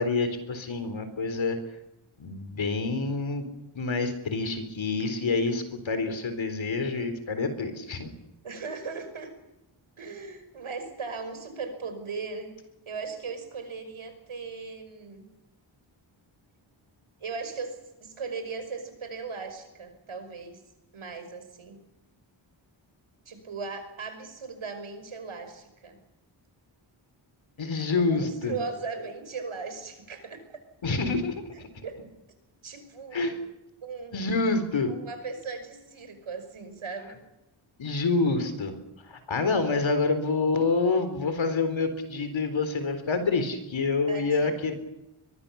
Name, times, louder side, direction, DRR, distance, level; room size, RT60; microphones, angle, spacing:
voice 1, 0.0-1.6 2.2-3.5 3.7-8.1 27.6-28.5 30.8-31.7 33.1-33.4 34.1-34.9 37.8-38.7 39.0-44.7, left 3 dB, 70° left, 9 dB, 4.0 m, -27 dB
voice 2, 8.4-9.3 10.0-12.5 12.9-15.3 17.2-20.6 20.9-21.8 23.3-26.0 27.8-30.6 31.5-32.0 32.6-33.4 33.8-34.2 34.9-37.2 44.1-44.5, right 4 dB, 85° right, 8 dB, 5.4 m, -38 dB
23.5 x 22.5 x 7.0 m, 0.93 s
wide cardioid pair, 180°, 48 cm